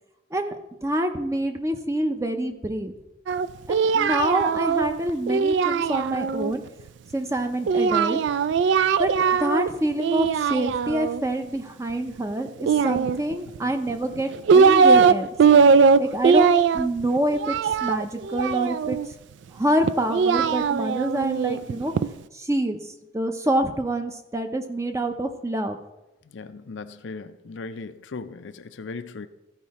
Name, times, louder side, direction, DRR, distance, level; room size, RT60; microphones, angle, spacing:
voice 1, 0.8-2.9 3.7-6.6 7.1-8.2 9.0-9.1 9.4-15.3 16.0-19.0 19.5-21.9 22.3-22.8 23.1-25.8, right 1 dB, 15° right, 7 dB, 0.5 m, -26 dB
Singing, 3.3-6.5 7.7-9.7 10.0-11.2 12.6-13.6 14.1-15.1 15.4-19.1 19.8-22.1, right 5 dB, 75° right, 0.3 m, -20 dB
voice 2, 26.2-29.3, left 4 dB, 85° left, 11 dB, 0.5 m, -38 dB
14.0 x 4.8 x 4.2 m, 0.97 s
head